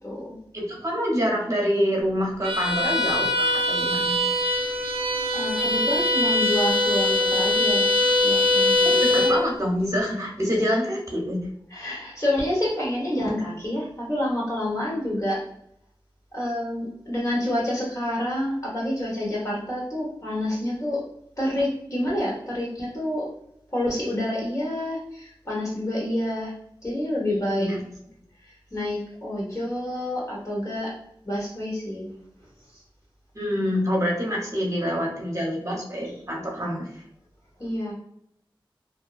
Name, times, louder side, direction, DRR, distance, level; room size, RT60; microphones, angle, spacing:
voice 1, 0.0-0.4 5.3-7.9 8.2-9.5 11.7-15.4 16.3-21.0 21.4-23.3 23.7-26.5 26.8-27.7 28.4-31.0 31.2-32.1 32.7-32.8 37.6-37.9, left 1 dB, 35° left, -4 dB, 1.2 m, -28 dB
voice 2, 0.5-4.2 8.8-11.4 11.9-12.0 27.5-27.8 33.3-37.0, equal, 35° right, -1 dB, 0.9 m, -26 dB
Bowed string instrument, 2.4-9.4, left 2 dB, 85° right, 0.5 m, -22 dB
2.6 x 2.2 x 2.4 m, 0.72 s
cardioid pair, 40°, 9 cm